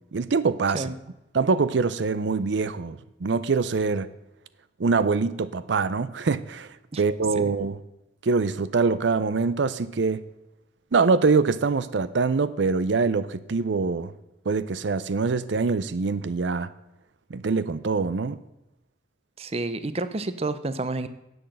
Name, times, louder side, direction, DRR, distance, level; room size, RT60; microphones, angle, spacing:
voice 1, 0.1-0.9 1.3-4.1 4.8-6.7 7.0-7.8 8.2-10.2 10.9-14.1 14.5-16.7 17.3-18.4, right 4 dB, 85° right, 15 dB, 0.5 m, -24 dB
voice 2, 19.4-21.1, right 2 dB, 35° right, 12 dB, 0.6 m, -30 dB
11.0 x 7.9 x 7.7 m, 0.93 s
head